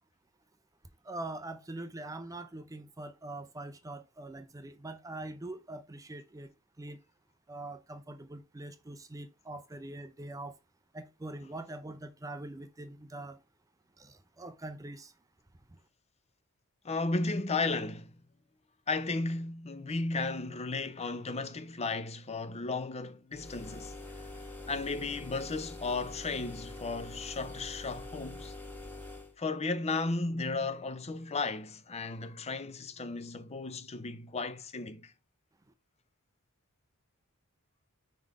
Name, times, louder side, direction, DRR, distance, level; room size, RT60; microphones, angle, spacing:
voice 1, 1.0-6.5 6.8-7.0 7.5-10.5 10.9-13.4 14.0-15.1, right 2 dB, 15° right, 0.5 m, -43 dB
voice 2, 16.8-18.1 18.9-23.9 24.7-28.5 29.4-35.1, left 3 dB, 30° left, 0.6 m, -34 dB
sound 1, 23.3-29.3, left 2 dB, 10° left, 1.3 m, -45 dB
5.1 x 3.8 x 4.7 m
head